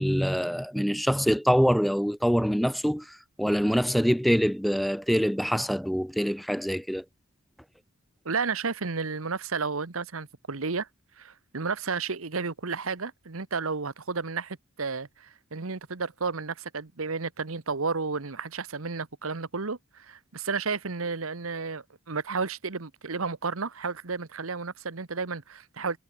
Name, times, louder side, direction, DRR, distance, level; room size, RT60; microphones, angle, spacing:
voice 1, 0.0-3.0 3.4-7.0, equal, ahead, 0.5 m, -24 dB
voice 2, 8.2-10.9 11.2-26.0, right 4 dB, 90° right, 1.3 m, -32 dB
head